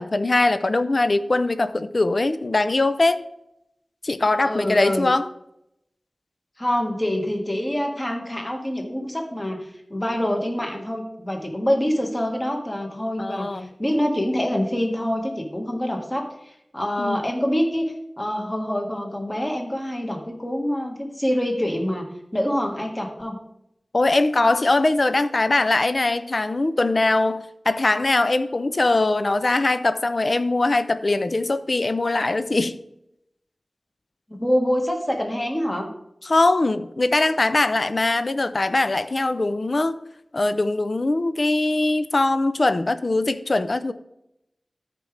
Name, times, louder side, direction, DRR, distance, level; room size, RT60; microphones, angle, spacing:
voice 1, 0.0-3.2 4.0-5.3 13.2-13.7 17.0-17.2 23.9-32.8 36.2-40.0 40.3-43.9, left 2 dB, 55° left, 12 dB, 0.4 m, -21 dB
voice 2, 4.4-5.1 6.6-17.9 18.2-22.1 22.3-23.4 34.3-35.9, equal, 25° left, 2 dB, 1.6 m, -26 dB
13.0 x 5.0 x 3.3 m, 0.82 s
wide cardioid pair, 65°, 0 cm